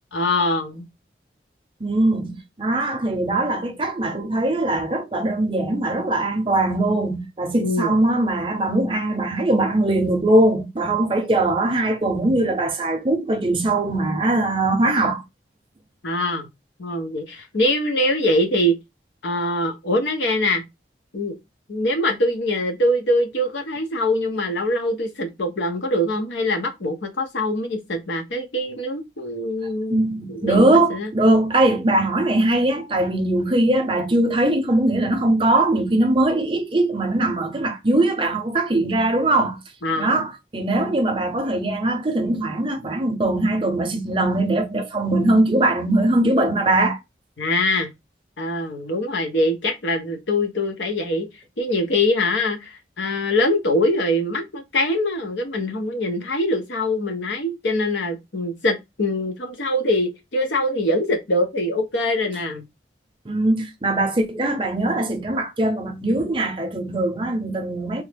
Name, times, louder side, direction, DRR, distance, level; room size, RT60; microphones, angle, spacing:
voice 1, 0.1-0.9 7.6-8.0 16.0-16.5 16.8-18.8 19.2-20.6 21.1-21.4 21.7-30.0 30.3-31.1 39.8-40.2 47.4-47.9 48.4-51.3 51.6-62.6, left 1 dB, 90° left, 0.8 m, -23 dB
voice 2, 1.8-15.2 29.9-39.6 39.9-47.0 63.2-68.0, right 2 dB, 30° right, 0.6 m, -21 dB
3.4 x 2.0 x 3.3 m
head